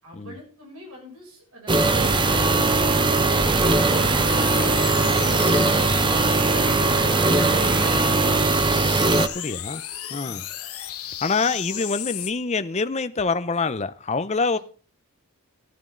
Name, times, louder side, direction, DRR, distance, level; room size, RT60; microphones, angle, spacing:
voice 1, 0.0-8.3 10.2-10.4 11.4-11.8 14.5-14.6, equal, 75° right, 6.8 m, -45 dB
sound 1, 1.7-9.3, right 3 dB, 20° right, 0.6 m, -20 dB
sound 2, 1.8-8.4, left 2 dB, 15° left, 1.7 m, -32 dB
sound 3, 4.3-12.3, left 11 dB, 75° left, 1.3 m, -35 dB
voice 2, 9.2-9.8 10.1-10.4 11.2-14.6, left 4 dB, 30° left, 0.6 m, -26 dB
14.0 x 11.5 x 3.8 m
head